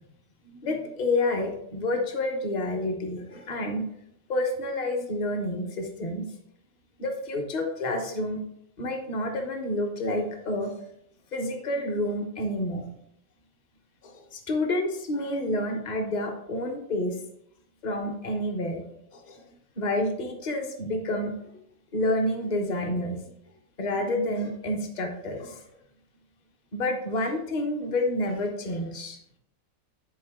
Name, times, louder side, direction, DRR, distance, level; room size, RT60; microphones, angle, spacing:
voice 1, 0.4-3.9 4.3-6.3 7.0-8.4 8.8-10.7 11.3-12.8 14.0-17.2 17.8-18.8 19.1-19.4 19.8-21.6 21.9-23.2 23.8-25.6 26.7-29.2, left 1 dB, 35° left, 3 dB, 1.0 m, -29 dB
10.0 x 4.1 x 3.6 m, 0.74 s
omnidirectional pair, 1.4 m